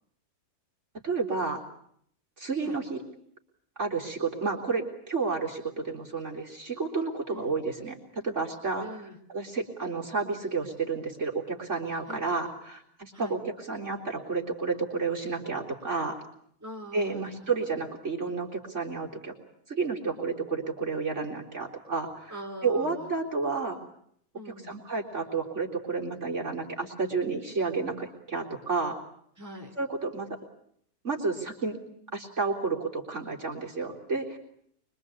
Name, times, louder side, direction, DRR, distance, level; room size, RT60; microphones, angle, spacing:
voice 1, 1.0-1.6 2.4-3.0 3.8-8.0 8.2-8.9 9.3-13.4 13.7-16.2 16.9-19.3 19.7-22.3 22.6-23.8 24.6-29.0 29.8-30.3 31.0-31.8 32.1-34.4, right 4 dB, 50° right, -1 dB, 4.0 m, -31 dB
voice 2, 7.3-7.6 8.8-9.2 12.1-12.2 13.1-13.3 16.6-17.5 22.3-23.1 24.3-24.7 29.4-29.7, equal, 10° right, 1 dB, 4.0 m, -43 dB
25.0 x 24.0 x 8.5 m, 0.68 s
omnidirectional pair, 1.6 m